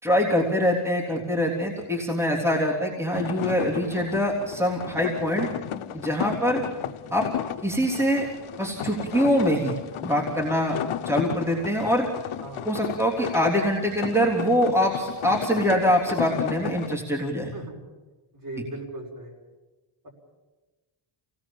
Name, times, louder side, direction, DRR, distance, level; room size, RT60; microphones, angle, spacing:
voice 1, 0.0-5.5 5.9-6.6 7.1-7.3 7.6-8.3 8.6-9.8 10.0-10.8 11.0-12.1 12.6-17.5, equal, 5° right, -1 dB, 3.4 m, -24 dB
sound 1, 3.1-16.9, left 10 dB, 85° left, 1.0 m, -34 dB
voice 2, 18.3-19.3, right 2 dB, 45° right, 1 dB, 5.6 m, -38 dB
28.0 x 18.0 x 7.3 m, 1.2 s
wide cardioid pair, 120°, 48 cm